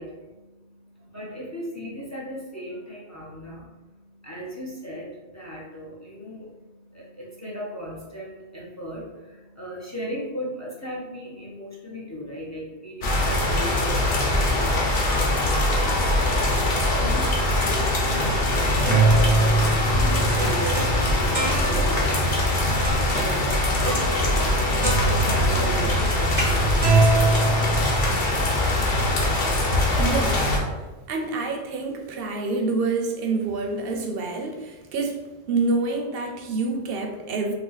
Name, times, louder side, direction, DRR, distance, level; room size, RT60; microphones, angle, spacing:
voice 1, 0.0-15.4 16.3-22.1 22.8-24.1 24.7-26.6, equal, 25° left, -4 dB, 0.4 m, -36 dB
sound 1, 13.0-30.6, left 1 dB, 60° left, 0.9 m, -22 dB
sound 2, 18.5-22.1 22.8-23.3 23.8-24.6 24.8-28.3, right 3 dB, 30° right, 0.5 m, -24 dB
voice 2, 30.0-30.5 31.1-37.5, right 3 dB, 65° right, 3 dB, 0.7 m, -27 dB
2.8 x 2.7 x 3.8 m, 1.2 s
omnidirectional pair, 1.2 m